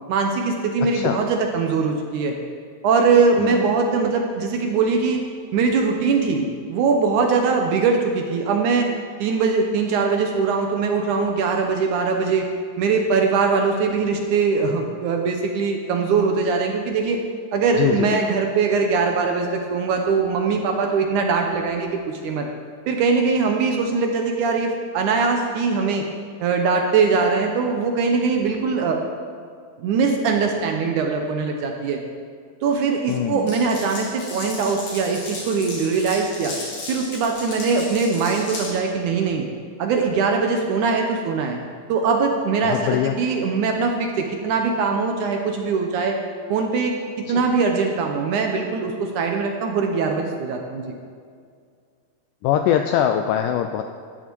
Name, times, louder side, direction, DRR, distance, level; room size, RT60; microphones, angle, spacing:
voice 1, 0.1-2.3 2.8-5.2 5.5-8.9 9.2-12.5 12.8-17.2 17.5-22.5 22.9-26.0 26.4-29.0 29.8-32.0 32.6-36.6 36.9-39.4 39.8-41.6 41.9-46.2 46.5-46.9 47.3-50.9, right 4 dB, 70° right, 3 dB, 2.0 m, -21 dB
voice 2, 17.8-18.2 33.1-33.5 42.6-43.2 47.3-47.5 52.4-53.8, left 10 dB, 85° left, 6 dB, 1.9 m, -22 dB
Glass, 33.5-38.7, left 2 dB, 65° left, 4.2 m, -35 dB
13.5 x 9.8 x 4.6 m, 2.1 s
omnidirectional pair, 4.2 m